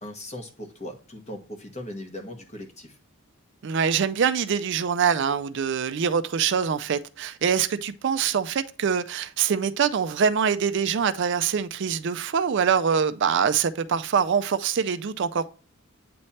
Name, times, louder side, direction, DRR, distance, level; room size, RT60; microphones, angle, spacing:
voice 1, 0.0-3.0, left 1 dB, 30° left, 1.2 m, -39 dB
voice 2, 3.6-15.5, right 7 dB, 55° right, 0.4 m, -24 dB
8.6 x 3.2 x 4.1 m
head